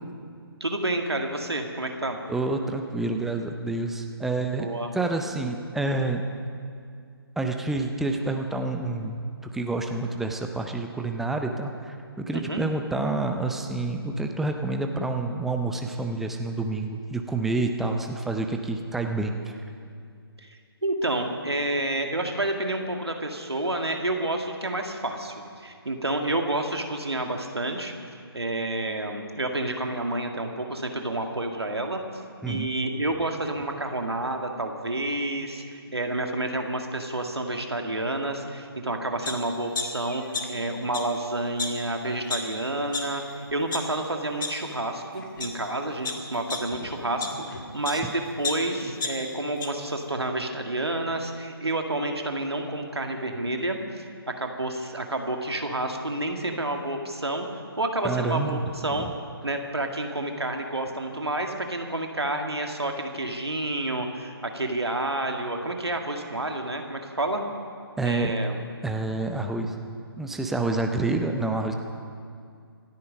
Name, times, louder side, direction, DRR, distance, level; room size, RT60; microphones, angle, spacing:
voice 1, 0.6-2.2 4.6-4.9 12.3-12.6 20.4-27.9 28.3-32.0 32.5-57.5 57.8-59.1 59.4-67.4 68.0-68.6, right 1 dB, 80° right, 3 dB, 1.9 m, -29 dB
voice 2, 2.3-4.7 4.9-6.2 7.4-19.3 32.4-32.7 47.9-48.0 58.0-59.1 68.0-68.3 68.8-69.8 70.2-71.7, right 2 dB, ahead, 4 dB, 0.5 m, -28 dB
sound 1, 39.2-39.3 39.7-40.6 40.9-41.0 41.6-41.7 42.3-42.4 42.9-43.0 43.5-43.8 44.4-44.5 45.2-45.5 46.0-48.0 48.4-49.7 50.1-50.2, left 4 dB, 50° left, 2.0 m, -31 dB
26.0 x 9.5 x 5.2 m, 2.3 s
figure-of-eight pair, 145°, 13 cm